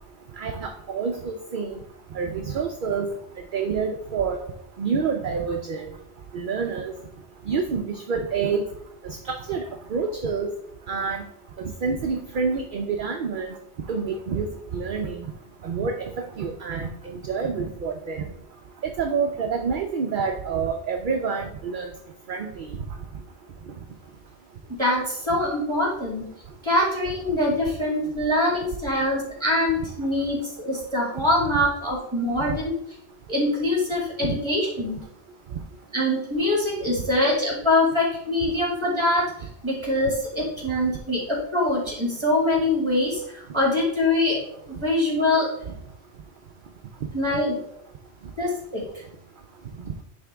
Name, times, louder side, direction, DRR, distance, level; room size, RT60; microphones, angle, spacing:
voice 1, 0.4-1.8 2.1-3.1 3.5-4.4 4.8-5.9 6.3-6.9 7.5-8.6 9.0-9.6 9.9-10.5 10.9-11.2 11.8-13.5 13.9-14.5 14.7-15.3 15.6-16.1 16.4-18.2 19.0-21.9 22.3-22.7 34.2-34.4, right 5 dB, 55° right, 4 dB, 0.7 m, -27 dB
voice 2, 24.8-26.3 26.6-32.8 33.3-35.0 35.9-44.4 44.7-45.5 47.1-47.6 48.4-48.8, left 1 dB, 25° right, -3 dB, 2.1 m, -24 dB
9.6 x 3.5 x 3.4 m, 0.72 s
omnidirectional pair, 1.1 m